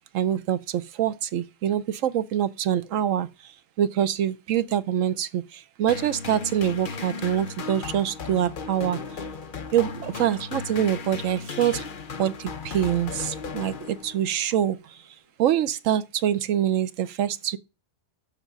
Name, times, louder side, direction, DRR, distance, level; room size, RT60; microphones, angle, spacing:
voice 1, 0.1-3.5 3.8-9.0 9.7-11.8 12.2-15.0 15.4-17.6, right 10 dB, 90° right, 1.1 m, -25 dB
sound 1, 5.9-14.4, left 5 dB, 50° left, 0.8 m, -36 dB
7.2 x 6.1 x 6.7 m
omnidirectional pair, 1.3 m